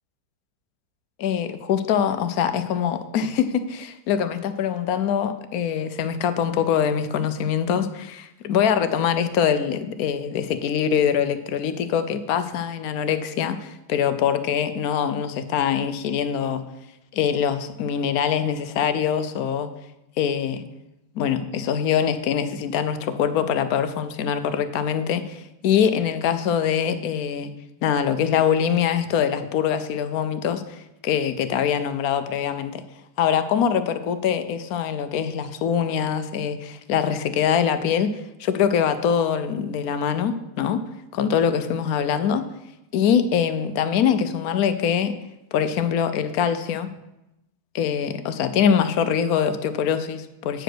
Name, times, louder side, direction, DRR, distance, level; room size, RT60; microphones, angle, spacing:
voice 1, 1.2-16.6 17.1-19.7 20.2-20.6 21.2-27.5 27.8-32.8 33.2-38.1 38.4-40.8 41.1-42.4 42.9-45.2 45.5-46.9 47.7-50.6, left 8 dB, 65° left, 11 dB, 1.0 m, -23 dB
8.9 x 5.0 x 6.1 m, 0.92 s
omnidirectional pair, 1.9 m